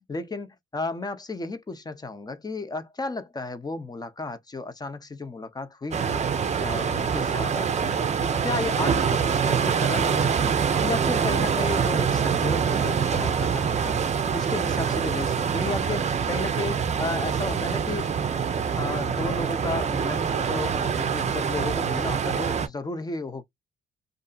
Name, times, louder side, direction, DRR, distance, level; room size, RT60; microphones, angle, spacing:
voice 1, 0.1-6.3 6.6-10.5 10.8-14.0 14.3-18.1 18.8-23.4, left 3 dB, 20° left, 0.6 m, -33 dB
sound 1, 5.9-22.7, right 7 dB, 35° right, 0.5 m, -25 dB
2.6 x 2.5 x 2.3 m
cardioid pair, 90°, 20 cm